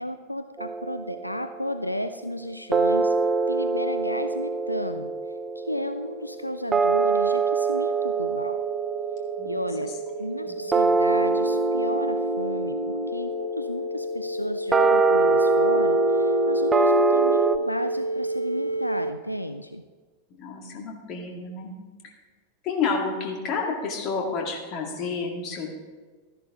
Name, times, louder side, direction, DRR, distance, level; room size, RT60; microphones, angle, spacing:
voice 1, 0.0-3.1 3.5-5.1 5.6-8.6 9.4-9.9 10.2-19.8, equal, 90° left, 10 dB, 0.3 m, -33 dB
sound 1, 0.6-1.9 2.7-17.6, right 4 dB, 15° right, 0.5 m, -24 dB
sound 2, 5.8-19.1, equal, 90° right, 0.4 m, -31 dB
voice 2, 20.4-21.7 22.6-25.7, left 4 dB, 35° left, 1 dB, 2.0 m, -30 dB
13.0 x 10.5 x 3.7 m, 1.4 s
figure-of-eight pair, 90°, 0 cm